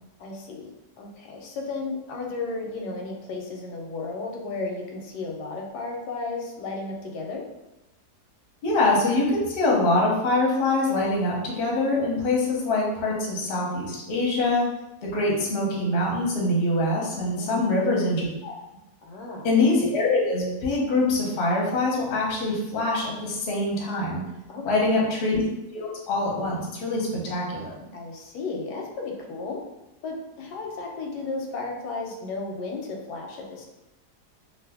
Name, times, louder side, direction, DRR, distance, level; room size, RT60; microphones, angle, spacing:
voice 1, 0.2-0.7 1.0-7.4 17.4-17.8 19.0-19.5 24.5-25.1 27.9-29.6 30.0-33.7, left 3 dB, 85° left, 1 dB, 1.2 m, -34 dB
voice 2, 8.6-14.7 15.0-18.5 19.4-24.2 24.6-25.4 25.7-27.7, left 2 dB, 50° left, -3 dB, 0.8 m, -24 dB
2.6 x 2.5 x 3.4 m, 0.97 s
omnidirectional pair, 1.7 m